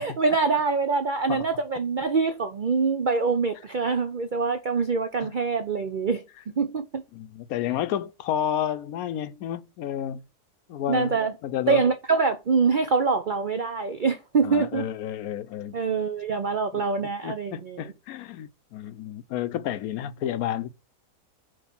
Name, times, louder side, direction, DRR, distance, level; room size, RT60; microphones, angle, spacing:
voice 1, 0.0-7.0 10.9-11.3 11.7-14.9 15.7-17.9, right 4 dB, 90° right, 0.4 m, -25 dB
voice 2, 7.1-10.2 10.7-11.8 14.4-15.7 16.7-20.7, left 10 dB, 70° left, 1.0 m, -31 dB
7.6 x 3.2 x 5.8 m
omnidirectional pair, 1.7 m